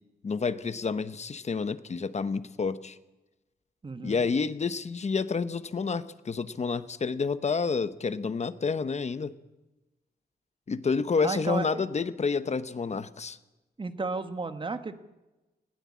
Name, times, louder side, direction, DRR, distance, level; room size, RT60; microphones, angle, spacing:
voice 1, 0.2-3.0 4.0-9.3 10.7-13.4, left 5 dB, 40° left, 13 dB, 0.9 m, -29 dB
voice 2, 3.8-4.3 11.2-11.8 13.8-15.0, right 3 dB, 30° right, 10 dB, 1.4 m, -33 dB
20.0 x 16.0 x 8.5 m, 1.1 s
wide cardioid pair, 150°, 17 cm